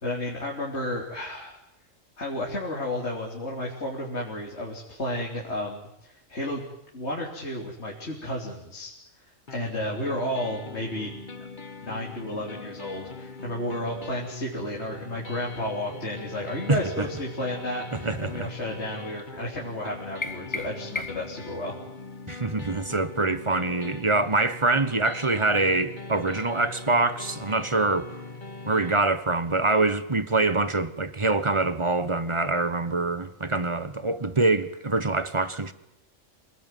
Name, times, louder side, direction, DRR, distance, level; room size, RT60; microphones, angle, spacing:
voice 1, 0.0-1.6 2.2-6.6 6.9-8.9 9.5-11.1 11.8-21.8, left 1 dB, 55° left, 3.9 m, -32 dB
sound 1, 9.5-29.0, left 3 dB, 40° left, 1.7 m, -42 dB
voice 2, 16.7-17.1 17.9-18.5 22.3-28.1 28.7-35.7, right 3 dB, 25° right, 1.2 m, -25 dB
sound 2, 20.2-21.4, left 3 dB, 20° left, 1.5 m, -34 dB
27.0 x 19.0 x 9.2 m
omnidirectional pair, 1.3 m